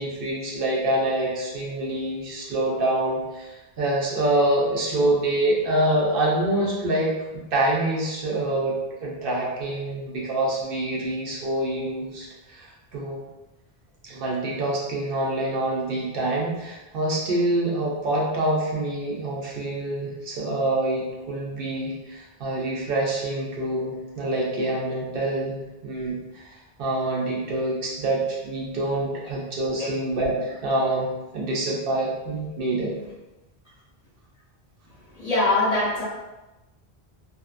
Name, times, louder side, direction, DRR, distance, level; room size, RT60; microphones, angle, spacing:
voice 1, 0.0-13.2 14.0-32.9, right 1 dB, 65° right, -3 dB, 0.7 m, -26 dB
voice 2, 35.1-36.0, left 2 dB, 40° left, -8 dB, 0.8 m, -22 dB
2.7 x 2.0 x 2.4 m, 1.0 s
omnidirectional pair, 1.0 m